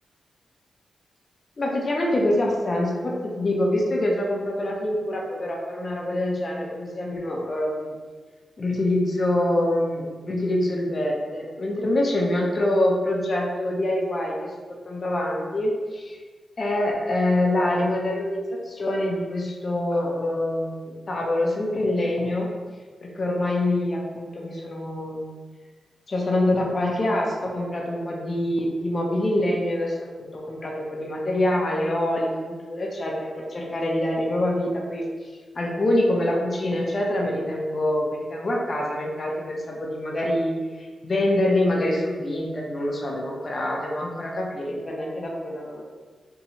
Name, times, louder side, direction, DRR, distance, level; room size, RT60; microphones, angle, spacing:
voice 1, 1.6-8.0 8.6-14.5 14.9-16.2 16.6-22.5 23.0-25.3 26.1-35.1 35.5-45.9, left 1 dB, 45° left, -1 dB, 0.5 m, -25 dB
2.7 x 2.2 x 2.8 m, 1.4 s
cardioid pair, 85°, 0 cm